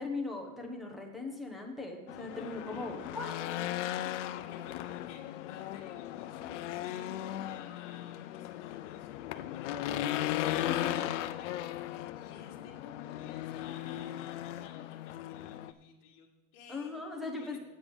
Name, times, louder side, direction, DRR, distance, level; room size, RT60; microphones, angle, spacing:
voice 1, 0.0-3.3 10.6-11.1 16.7-17.6, left 3 dB, ahead, 2 dB, 0.8 m, -39 dB
Race car auto racing / Engine, 2.1-15.7, left 13 dB, 70° left, 0.6 m, -37 dB
voice 2, 2.2-3.2 3.9-12.7 13.0-17.6, left 8 dB, 45° left, -5 dB, 1.5 m, -53 dB
8.9 x 8.6 x 5.2 m, 1.2 s
supercardioid pair, 180°, 37 cm